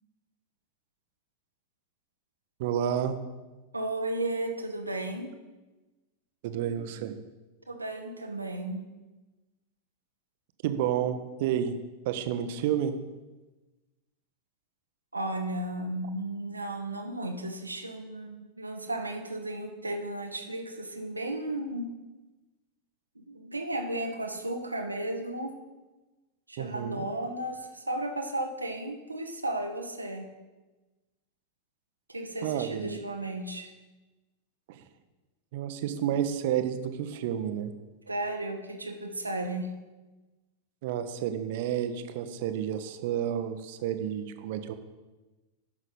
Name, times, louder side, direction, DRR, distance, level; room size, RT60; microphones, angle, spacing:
voice 1, 2.6-3.2 6.4-7.1 10.6-11.7 12.0-12.9 26.6-27.0 32.4-33.0 34.7-34.8 35.5-37.7 40.8-44.7, right 10 dB, 50° right, 9 dB, 0.8 m, -30 dB
voice 2, 3.7-5.3 7.7-8.9 15.1-21.9 23.2-25.5 26.5-30.3 32.1-33.7 38.1-39.7, right 1 dB, 80° right, 3 dB, 0.9 m, -34 dB
9.8 x 6.2 x 5.3 m, 1.2 s
figure-of-eight pair, 90°, 0 cm